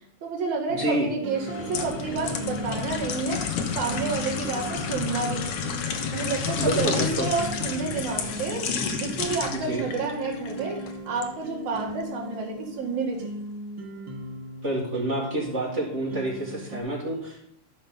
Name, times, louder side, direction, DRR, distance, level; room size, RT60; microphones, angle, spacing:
voice 1, 0.2-5.6 6.1-13.3, right 4 dB, 70° right, -2 dB, 3.1 m, -30 dB
sound 1, 0.7-16.8, equal, 50° right, 1.9 m, -38 dB
voice 2, 0.8-1.1 6.4-7.3 9.5-9.9 14.6-17.4, right 1 dB, 25° right, -3 dB, 1.8 m, -28 dB
sound 2, 1.4-11.3 11.8-11.9, left 6 dB, 65° left, 1.5 m, -31 dB
13.0 x 5.6 x 3.9 m, 0.75 s
omnidirectional pair, 3.6 m